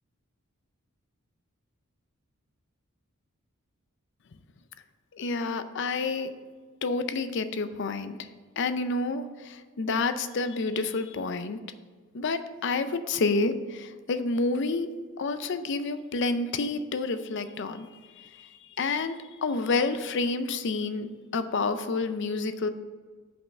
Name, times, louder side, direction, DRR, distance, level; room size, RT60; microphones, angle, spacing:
voice 1, 5.1-6.3 6.8-8.3 8.6-11.6 12.1-14.9 15.2-17.9 18.2-21.1 21.3-22.7, left 3 dB, 55° left, 11 dB, 0.5 m, -29 dB
5.7 x 5.4 x 6.6 m, 1.5 s
head